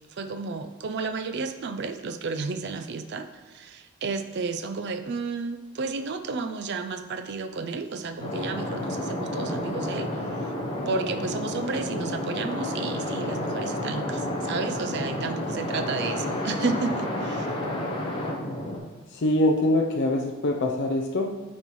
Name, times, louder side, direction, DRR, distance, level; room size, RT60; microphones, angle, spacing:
voice 1, 0.1-10.5 10.9-17.6, right 4 dB, 50° right, 7 dB, 0.4 m, -32 dB
sound 1, 8.2-18.8, left 1 dB, 25° left, 0.8 m, -30 dB
voice 2, 19.1-21.4, left 1 dB, 55° left, 2 dB, 0.5 m, -24 dB
8.7 x 4.3 x 3.1 m, 1.2 s
head